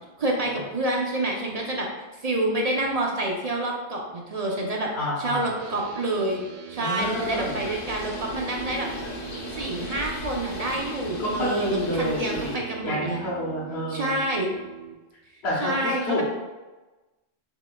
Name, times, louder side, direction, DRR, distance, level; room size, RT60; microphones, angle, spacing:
voice 1, 0.2-1.9 2.2-4.9 5.2-6.4 6.7-8.9 9.5-13.2 13.9-14.5 15.6-16.2, right 1 dB, 45° right, -1 dB, 0.5 m, -27 dB
voice 2, 4.9-5.5 6.8-7.6 11.0-14.2 15.4-16.2, left 1 dB, 60° left, -6 dB, 1.1 m, -29 dB
sound 1, 5.6-14.9, right 11 dB, 75° right, 0.9 m, -41 dB
Bird, 7.0-12.5, left 2 dB, 40° left, 0.7 m, -36 dB
5.9 x 3.4 x 2.2 m, 1.2 s
omnidirectional pair, 1.3 m